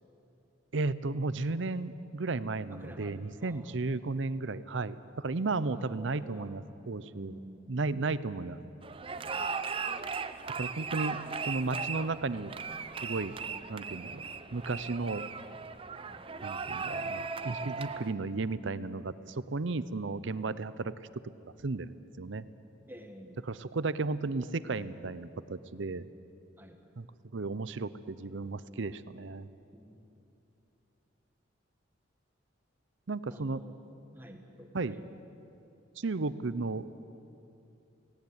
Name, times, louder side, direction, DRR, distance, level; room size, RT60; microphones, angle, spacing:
voice 1, 0.7-7.4 7.7-8.6 10.6-11.2 11.5-12.6 13.0-13.4 13.7-14.3 14.5-15.2 16.4-20.9 21.6-22.5 23.4-26.0 27.0-27.1 27.3-29.5 33.1-33.6 34.7-35.0 36.0-36.8, right 3 dB, 70° right, 15 dB, 0.7 m, -34 dB
voice 2, 2.7-3.8 5.5-6.5 7.0-7.8 9.3-9.6 13.4-13.6 16.1-16.3 22.9-23.4 26.6-26.8 29.7-30.1 33.3-33.7 34.1-35.0, equal, 10° right, 4 dB, 1.6 m, -50 dB
sound 1, 8.8-18.1, right 5 dB, 25° right, 0.6 m, -37 dB
17.5 x 17.5 x 9.6 m, 2.9 s
head